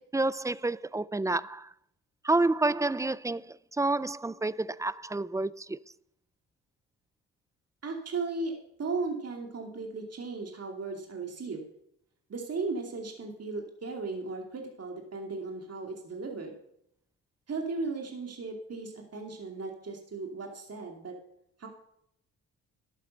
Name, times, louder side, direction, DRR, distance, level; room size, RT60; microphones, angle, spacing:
voice 1, 0.0-1.7 2.2-5.8, right 2 dB, 10° right, 0.4 m, -29 dB
voice 2, 7.8-8.5 8.8-11.7 12.3-16.5 17.5-21.2 21.6-21.7, right 3 dB, 50° right, 2.6 m, -36 dB
12.0 x 9.0 x 6.6 m
cardioid pair, 65°, 32 cm